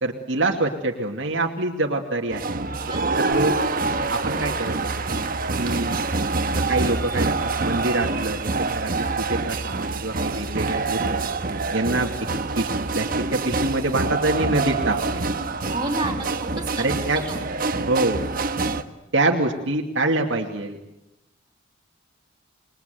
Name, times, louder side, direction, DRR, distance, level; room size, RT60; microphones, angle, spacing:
voice 1, 0.0-2.5 3.2-3.5 4.1-5.2 5.6-6.0 6.7-11.3 11.7-12.1 12.6-15.2 16.8-17.2 17.9-18.2 19.1-20.8, right 2 dB, 65° right, 1 dB, 2.5 m, -25 dB
sound 1, 2.3-18.8, right 3 dB, 45° right, 1.3 m, -26 dB
voice 2, 2.9-3.2 15.7-16.8 17.2-17.6, right 2 dB, 20° right, 0 dB, 5.1 m, -31 dB
27.5 x 22.0 x 9.4 m, 0.93 s
head